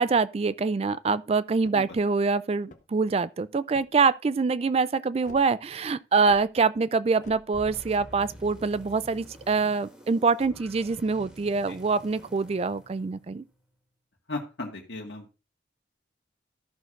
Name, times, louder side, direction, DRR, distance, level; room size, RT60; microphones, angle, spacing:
voice 1, 0.0-13.4, right 4 dB, 35° right, 0.3 m, -25 dB
sound 1, 1.6-2.0 2.6-3.1 3.7-4.1 5.2-5.5 6.2-6.5 7.2-7.4, left 2 dB, 40° left, 0.7 m, -49 dB
sound 2, 7.5-13.7, equal, 5° right, 1.7 m, -48 dB
voice 2, 14.3-15.4, left 2 dB, 75° left, 1.8 m, -36 dB
14.0 x 6.3 x 2.5 m
head